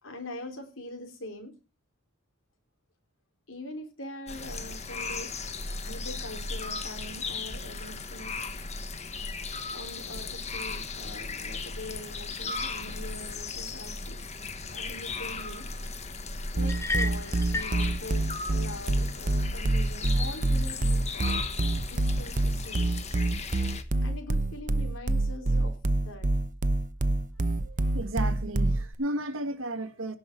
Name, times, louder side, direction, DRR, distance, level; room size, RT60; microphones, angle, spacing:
voice 1, 0.0-1.5 3.5-5.4 5.8-8.5 9.7-15.7 16.5-21.4 21.9-22.9 24.0-26.3, left 1 dB, 75° left, 3.9 m, -43 dB
sound 1, 4.3-23.8, left 4 dB, 35° left, 1.3 m, -36 dB
sound 2, 16.6-28.9, right 1 dB, 40° right, 0.8 m, -26 dB
sound 3, 16.7-17.8, left 2 dB, 15° left, 1.1 m, -31 dB
voice 2, 27.6-30.2, right 1 dB, 90° right, 1.7 m, -33 dB
17.0 x 5.8 x 5.3 m
head